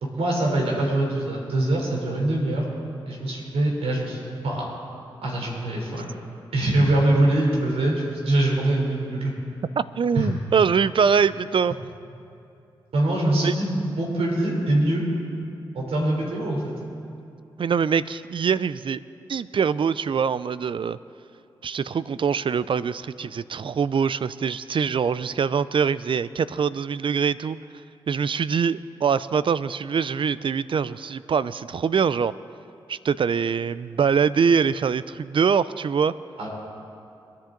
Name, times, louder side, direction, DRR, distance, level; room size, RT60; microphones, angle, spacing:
voice 1, 0.0-2.7 3.1-4.7 5.2-6.1 6.5-9.3 10.1-10.3 12.9-15.0 15.7-16.7 36.4-36.5, right 1 dB, 80° right, -2 dB, 3.6 m, -23 dB
voice 2, 10.0-11.7 13.4-13.5 17.6-19.0 19.3-21.0 21.6-27.6 28.1-32.3 32.9-36.1, right 6 dB, 55° right, 16 dB, 0.5 m, -23 dB
23.0 x 10.5 x 3.9 m, 2.7 s
supercardioid pair, 40°, 10 cm